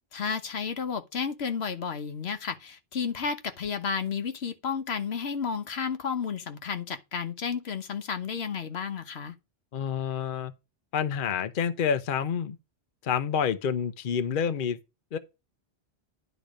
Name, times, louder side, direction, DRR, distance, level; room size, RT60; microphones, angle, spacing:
voice 1, 0.1-9.3, left 6 dB, 80° left, 1.2 m, -32 dB
voice 2, 9.7-10.5 10.9-12.6 13.0-14.8 15.1-15.2, left 7 dB, 55° left, 0.8 m, -28 dB
10.5 x 4.0 x 5.1 m
omnidirectional pair, 1.1 m